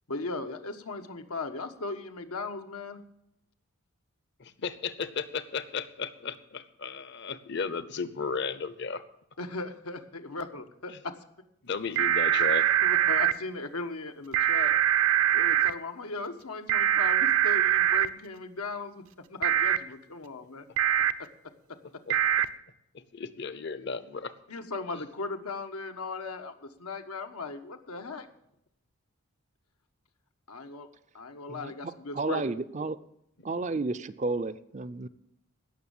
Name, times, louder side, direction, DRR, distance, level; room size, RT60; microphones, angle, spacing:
voice 1, 0.1-3.0 9.4-11.1 12.8-14.7 15.3-19.0 19.3-20.6 24.5-28.3 30.5-30.9 31.1-32.4, left 3 dB, 85° left, 6 dB, 1.3 m, -37 dB
voice 2, 4.4-9.0 10.9-11.0 11.6-12.7 22.1-22.2 22.9-24.3 24.9-25.0, left 5 dB, 50° left, 14 dB, 0.9 m, -34 dB
sound 1, 12.0-13.3 14.3-15.7 16.7-18.1 19.4-19.8 20.8-21.1 22.1-22.5, right 10 dB, 70° right, 0.7 m, -23 dB
voice 3, 32.1-33.0 33.4-35.1, right 3 dB, 30° right, 13 dB, 0.5 m, -31 dB
16.5 x 6.6 x 7.2 m, 0.78 s
head